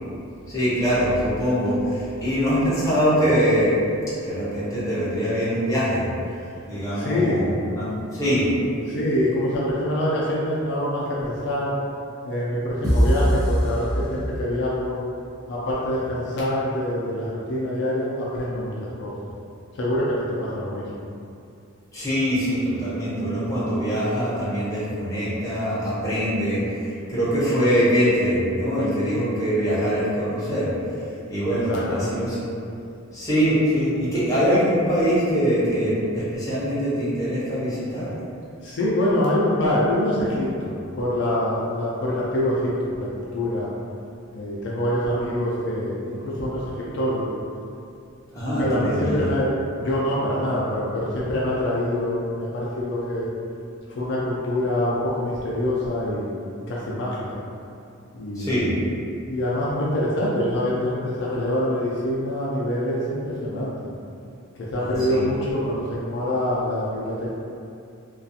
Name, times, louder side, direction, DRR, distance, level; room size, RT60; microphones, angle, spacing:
voice 1, 0.5-3.8 4.1-6.1 6.7-8.5 21.9-26.8 27.1-30.7 31.3-32.4 33.1-38.1 48.3-49.2 58.4-58.7 64.8-65.2, equal, 15° left, -11 dB, 0.7 m, -23 dB
voice 2, 6.9-7.4 8.9-11.7 12.2-15.0 15.5-19.1 19.7-20.9 31.5-32.1 38.6-43.7 44.3-47.3 48.6-53.3 53.9-56.3 56.7-57.4 58.1-58.8 59.3-63.7 64.7-67.3, left 1 dB, 55° left, -6 dB, 0.4 m, -25 dB
sound 1, 12.8-14.7, equal, 15° right, 0.4 m, -21 dB
2.4 x 2.3 x 2.7 m, 2.5 s
head